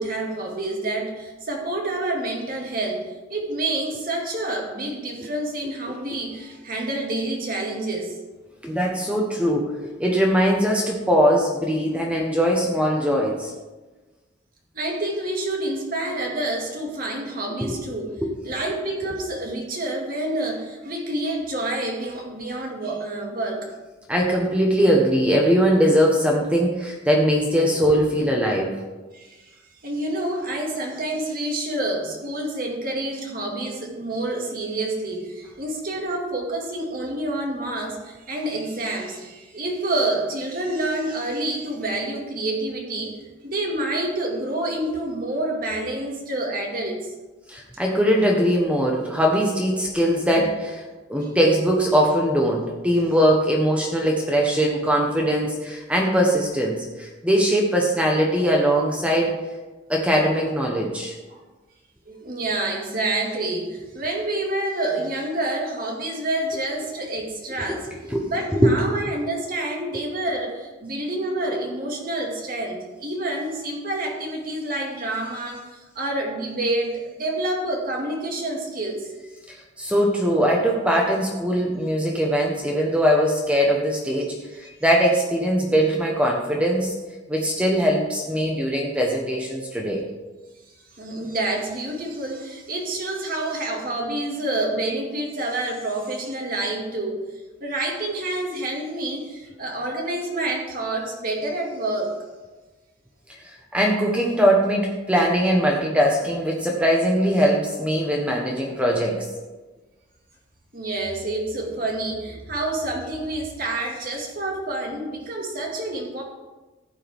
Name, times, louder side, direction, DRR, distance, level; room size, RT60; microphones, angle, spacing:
voice 1, 0.0-8.2 14.7-18.1 18.4-23.7 29.1-29.5 29.8-43.1 43.4-47.1 50.4-50.5 51.9-52.0 54.7-54.8 61.3-61.4 62.1-67.9 68.3-79.1 84.6-84.7 91.0-97.2 97.6-102.1 110.7-116.2, right 2 dB, 45° right, 0 dB, 2.1 m, -28 dB
voice 2, 8.6-13.5 17.6-17.8 18.2-18.4 24.1-28.8 47.5-50.8 51.1-59.4 59.9-61.2 67.7-67.8 68.0-69.0 69.9-70.0 79.5-86.9 87.3-90.0 103.3-109.3, equal, 5° right, -1 dB, 1.2 m, -21 dB
14.5 x 8.8 x 3.6 m, 1.2 s
head